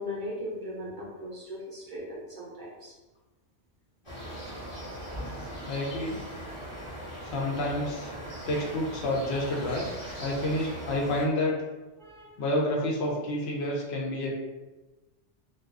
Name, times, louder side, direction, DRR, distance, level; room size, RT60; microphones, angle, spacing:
voice 1, 0.0-2.9 12.0-12.3, left 1 dB, 60° right, -5 dB, 0.5 m, -38 dB
sound 1, 4.0-11.3, equal, 30° left, 0.9 m, -39 dB
voice 2, 5.7-6.2 7.2-8.1 8.5-9.8 10.2-11.5 12.4-14.3, left 1 dB, 70° left, -2 dB, 0.8 m, -29 dB
2.4 x 2.2 x 2.4 m, 1.1 s
omnidirectional pair, 1.2 m